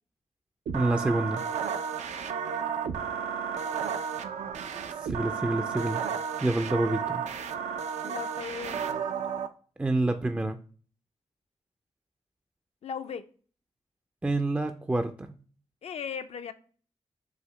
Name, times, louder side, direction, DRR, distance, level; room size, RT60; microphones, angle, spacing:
voice 1, 0.7-1.4 5.0-6.0 6.4-7.2 9.8-10.6 14.2-15.4, right 2 dB, 10° right, 0.3 m, -27 dB
sound 1, 0.7-9.5, right 7 dB, 85° right, 0.4 m, -33 dB
voice 2, 8.0-8.9 12.8-13.3 15.8-16.5, left 7 dB, 65° left, 0.4 m, -37 dB
4.8 x 2.7 x 3.0 m
cardioid pair, 75°, 12 cm